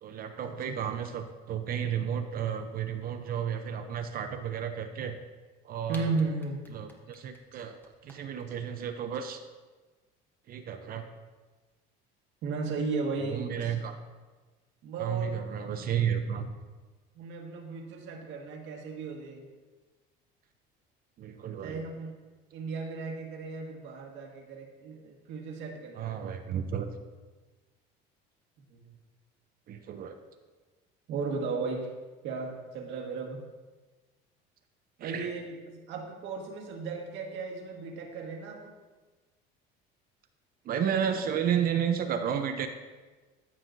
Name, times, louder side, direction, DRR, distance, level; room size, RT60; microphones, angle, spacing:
voice 1, 0.0-5.2 5.6-6.1 6.7-9.4 10.5-11.0 13.2-13.9 15.0-16.5 21.2-21.8 25.9-26.9 29.7-30.2 35.0-35.3 40.6-42.7, right 8 dB, 45° right, 7 dB, 0.6 m, -32 dB
sound 1, 5.9-8.4, equal, 10° left, 1.3 m, -50 dB
voice 2, 5.9-6.7 7.5-7.6 12.4-13.8 14.8-15.3 15.7-16.0 17.2-19.5 21.6-22.1 22.5-26.3 28.7-28.9 31.1-31.9 32.2-33.4 35.0-38.7, right 4 dB, 65° right, 1 dB, 1.7 m, -35 dB
14.0 x 5.6 x 2.7 m, 1.3 s
supercardioid pair, 110°, 21 cm